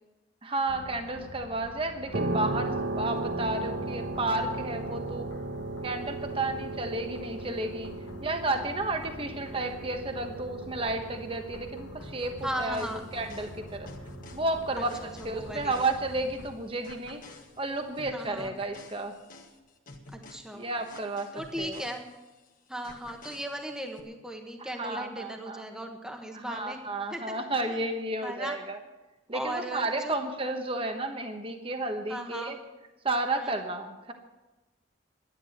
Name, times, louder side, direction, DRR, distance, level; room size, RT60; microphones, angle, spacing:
voice 1, 0.4-5.3 5.8-7.9 8.2-12.9 13.1-13.9 14.3-15.0 15.2-17.2 17.6-19.1 20.5-21.3 21.6-21.8 24.6-25.7 26.3-28.8 29.3-32.6 33.0-34.1, right 2 dB, 25° right, 6 dB, 1.1 m, -32 dB
sound 1, 0.7-16.6, left 1 dB, 70° left, 1.0 m, -47 dB
sound 2, 2.1-16.8, right 2 dB, 60° right, 1.2 m, -37 dB
sound 3, 12.0-16.5 16.8-22.5 22.8-24.0, left 2 dB, 40° left, 1.6 m, -50 dB
voice 2, 12.4-13.0 14.8-15.8 18.1-18.5 20.3-20.6 21.3-22.1 22.7-26.8 27.1-27.8 28.2-28.6 29.3-30.1 32.1-32.5 33.3-33.5, right 1 dB, 5° right, 3 dB, 1.2 m, -37 dB
12.0 x 11.0 x 7.9 m, 1.1 s
head